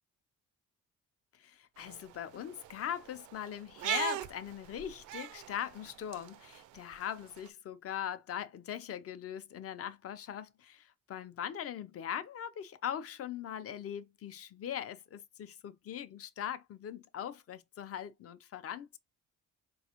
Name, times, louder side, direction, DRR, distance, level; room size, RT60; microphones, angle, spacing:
voice 1, 1.3-19.0, left 9 dB, 50° left, 0.5 m, -40 dB
sound 1, 1.8-7.5, right 14 dB, 80° right, 0.4 m, -41 dB
4.2 x 2.3 x 2.8 m
cardioid pair, 90°, 30 cm